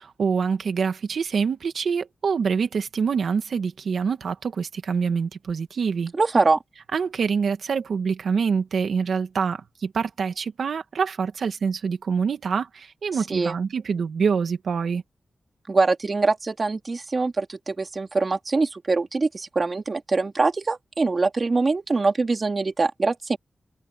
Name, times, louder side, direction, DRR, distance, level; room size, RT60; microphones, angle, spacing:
voice 1, 0.0-6.1 6.9-15.0, right 6 dB, 80° right, 1.9 m, -25 dB
voice 2, 6.1-6.6 13.3-13.6 15.7-23.4, right 3 dB, 45° right, 2.6 m, -23 dB
cardioid pair, 75°, 0 cm